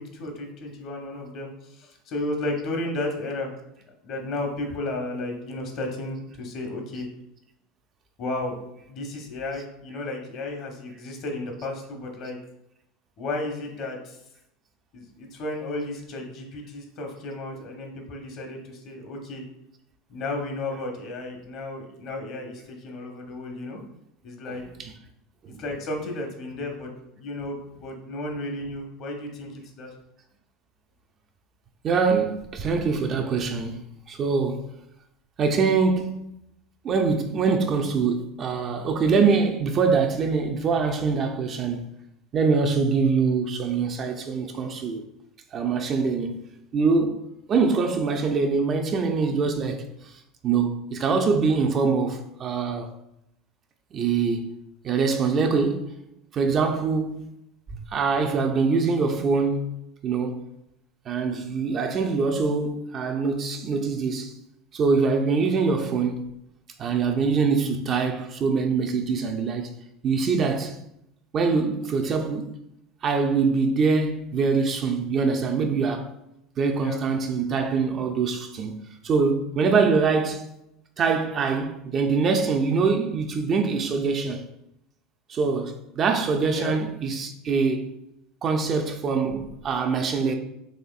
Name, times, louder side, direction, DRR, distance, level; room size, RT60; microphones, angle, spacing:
voice 1, 0.0-3.5 4.0-7.1 8.2-8.6 8.9-12.4 13.2-14.2 14.9-19.4 20.1-23.8 24.2-24.6 25.6-26.9 27.2-29.9 76.8-77.0 86.5-86.8, left 2 dB, 55° left, 1.0 m, -33 dB
voice 2, 24.5-24.9 25.4-25.6 31.8-33.8 34.1-34.6 35.4-36.3 36.8-41.9 42.3-45.0 45.5-46.4 46.7-47.2 47.5-49.9 50.4-52.9 53.9-54.5 54.8-55.9 56.3-57.3 57.7-59.7 60.0-60.5 61.1-64.3 64.7-66.3 66.8-69.7 70.0-70.8 71.3-72.5 73.0-76.1 76.6-78.8 79.0-80.5 81.0-84.4 85.3-87.9 88.4-90.4, right 4 dB, 40° right, 0.5 m, -24 dB
4.2 x 3.0 x 2.4 m
hypercardioid pair, 85°, 0 cm